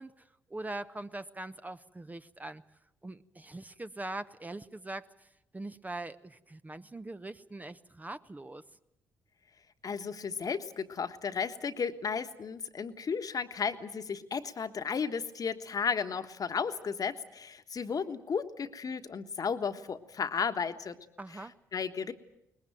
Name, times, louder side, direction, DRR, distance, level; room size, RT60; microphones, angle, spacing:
voice 1, 0.0-2.6 3.0-8.6 21.2-21.5, right 2 dB, 20° right, 11 dB, 0.8 m, -42 dB
voice 2, 9.8-21.0 21.7-22.1, left 6 dB, 45° left, 8 dB, 1.4 m, -34 dB
22.5 x 20.5 x 9.1 m, 0.80 s
hypercardioid pair, 45°, 9 cm